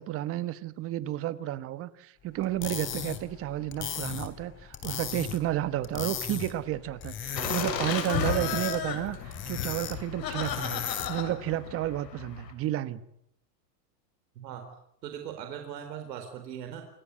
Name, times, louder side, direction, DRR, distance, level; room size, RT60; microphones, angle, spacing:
voice 1, 0.0-13.0, right 14 dB, 25° right, 1.2 m, -32 dB
sound 1, 2.4-11.3, left 9 dB, 25° left, 3.2 m, -37 dB
Laughter, 7.4-12.5, left 7 dB, 80° left, 7.9 m, -34 dB
voice 2, 14.4-14.7 15.0-16.8, right 9 dB, 75° right, 4.4 m, -39 dB
27.5 x 18.5 x 9.9 m
supercardioid pair, 150°, 50 cm